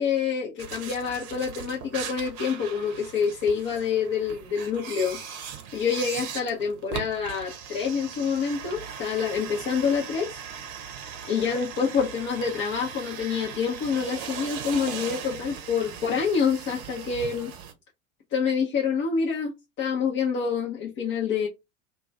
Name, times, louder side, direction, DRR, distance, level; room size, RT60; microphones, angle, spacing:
voice 1, 0.0-5.2 5.7-10.3 11.3-17.5 18.3-21.5, left 6 dB, 35° left, 0.7 m, -27 dB
sound 1, 0.6-17.7, right 7 dB, 45° right, 0.7 m, -39 dB
2.3 x 2.2 x 3.9 m
figure-of-eight pair, 80°, 37 cm